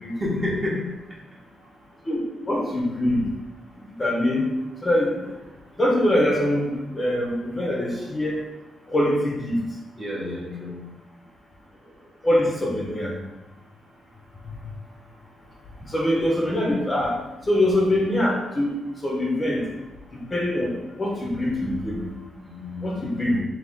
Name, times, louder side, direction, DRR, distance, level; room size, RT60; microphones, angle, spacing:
voice 1, 0.2-1.0 10.0-10.9 22.5-22.9 23.2-23.3, left 2 dB, 20° right, -4 dB, 0.9 m, -29 dB
voice 2, 2.1-3.2 4.0-4.4 4.8-5.1 5.8-8.3 8.9-9.6 12.2-13.1 15.9-17.1 17.5-18.7 19.0-19.6 20.1-20.7 21.0-22.1 22.8-23.4, left 1 dB, 20° left, -3 dB, 0.7 m, -23 dB
3.9 x 2.7 x 3.6 m, 1.1 s
wide cardioid pair, 160°, 0 cm